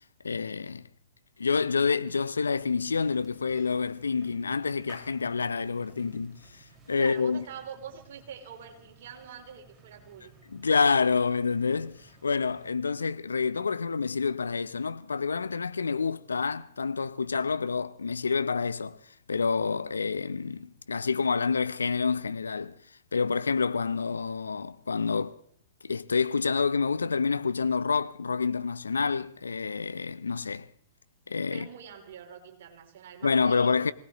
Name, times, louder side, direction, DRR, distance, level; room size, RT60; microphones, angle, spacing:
voice 1, 0.2-0.8 1.4-6.4 6.9-7.4 10.5-19.0 19.3-22.7 23.1-25.4 25.8-30.7 31.3-31.7 33.2-33.9, left 5 dB, 85° left, 0.5 m, -28 dB
sound 1, 2.6-12.7, right 3 dB, 15° right, 5.2 m, -57 dB
voice 2, 7.0-10.3 31.5-33.9, right 8 dB, 60° right, 3.1 m, -45 dB
25.0 x 18.0 x 3.0 m
hypercardioid pair, 105°, 0 cm